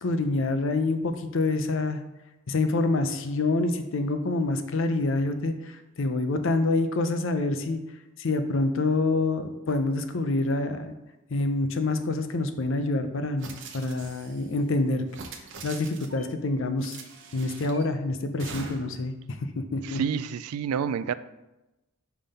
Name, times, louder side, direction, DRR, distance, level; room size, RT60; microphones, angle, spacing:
voice 1, 0.0-2.0 2.5-7.8 8.2-10.9 11.3-15.0 15.6-17.0 17.3-20.0, left 2 dB, 60° left, 8 dB, 0.6 m, -27 dB
sound 1, 13.4-14.5 15.1-16.3 16.8-17.8 18.4-19.0, right 4 dB, 55° right, 0.8 m, -42 dB
voice 2, 19.8-21.1, right 7 dB, 90° right, 14 dB, 0.3 m, -28 dB
5.5 x 3.5 x 5.4 m, 0.99 s
head